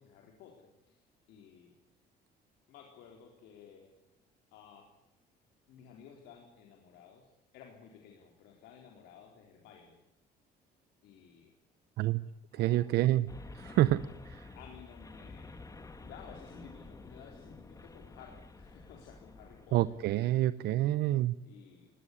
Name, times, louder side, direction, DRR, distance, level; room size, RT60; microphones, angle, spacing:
voice 1, 0.0-1.8 2.7-3.9 4.5-4.9 5.7-10.0 11.0-11.5 12.5-12.9 14.5-15.7 16.0-19.8 20.2-20.3 21.4-21.9, left 7 dB, 85° left, 1 dB, 4.0 m, -55 dB
voice 2, 12.5-13.3 13.5-14.5 19.7-21.4, right 15 dB, 75° right, 16 dB, 0.7 m, -28 dB
sound 1, 13.3-20.2, left 3 dB, 20° left, 2.2 m, -50 dB
20.0 x 18.5 x 9.9 m, 0.95 s
cardioid pair, 110°, 17 cm